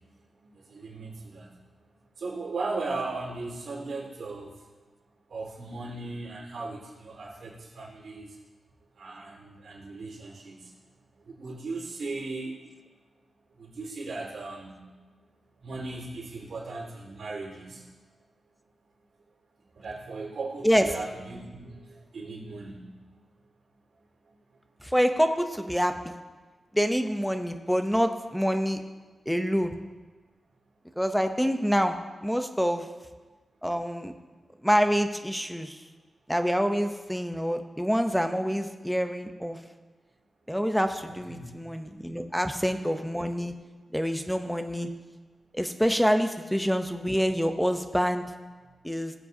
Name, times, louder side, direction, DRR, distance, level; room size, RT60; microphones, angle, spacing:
voice 1, 0.4-1.5 2.2-4.5 5.3-8.3 9.0-10.7 11.2-12.5 13.6-14.9 15.6-17.8 19.8-22.9 41.1-41.4, right 3 dB, 80° right, -5 dB, 3.9 m, -37 dB
voice 2, 24.8-26.1 26.7-28.8 29.3-29.8 31.0-32.9 33.6-34.1 34.6-35.8 36.3-39.6 40.5-43.5 43.9-44.9 45.5-48.3 48.8-49.1, equal, ahead, 7 dB, 0.6 m, -26 dB
20.0 x 7.3 x 2.7 m, 1.3 s
wide cardioid pair, 135°, 0 cm